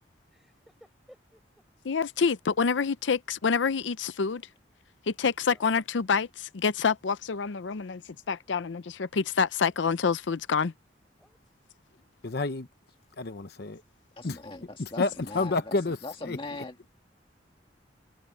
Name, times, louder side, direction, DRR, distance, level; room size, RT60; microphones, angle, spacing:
voice 1, 0.3-1.6 5.2-5.6 11.2-11.4 14.2-14.3, equal, ahead, 6.8 m, -59 dB
voice 2, 1.9-4.4 5.1-8.0 8.3-10.7, left 5 dB, 90° left, 0.6 m, -27 dB
voice 3, 12.2-12.7 13.2-13.8 14.2-14.4 14.8-16.0 16.2-16.4, left 3 dB, 60° left, 0.9 m, -29 dB
voice 4, 14.2-15.7 16.0-16.9, left 2 dB, 30° left, 1.8 m, -40 dB
head